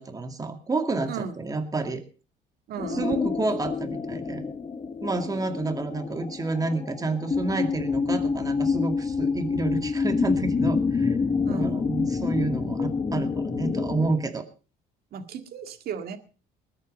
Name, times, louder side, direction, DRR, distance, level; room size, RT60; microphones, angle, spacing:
voice 1, 0.0-2.0 2.9-4.4 5.0-11.2 11.5-14.5, right 3 dB, 20° right, 7 dB, 2.2 m, -29 dB
voice 2, 2.7-3.2 11.4-11.9 15.1-16.2, right 6 dB, 65° right, 8 dB, 2.0 m, -35 dB
sound 1, 2.8-14.1, left 5 dB, 30° left, 1.5 m, -27 dB
20.5 x 9.0 x 5.3 m, 0.36 s
cardioid pair, 110°, 17 cm